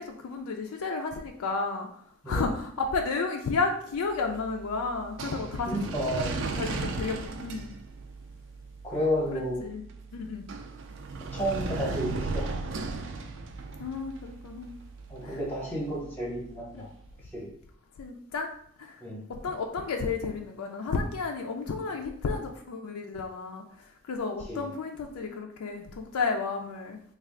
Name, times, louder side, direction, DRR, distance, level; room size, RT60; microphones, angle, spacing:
voice 1, 0.0-1.9 2.3-5.8 6.2-6.3 6.5-7.7 9.3-9.8 10.1-10.4 13.8-14.8 15.2-15.4 16.7-16.8 18.0-18.5 18.8-19.0 19.3-27.0, left 4 dB, 90° left, 3 dB, 0.4 m, -32 dB
sound 1, 4.1-17.2, right 3 dB, 55° right, 0.4 m, -37 dB
voice 2, 5.7-6.4 8.8-9.6 11.3-12.5 13.1-13.2 15.1-16.9 17.3-17.5 19.0-19.2 24.5-24.7, equal, 10° left, -3 dB, 0.8 m, -31 dB
3.3 x 2.3 x 3.6 m, 0.65 s
head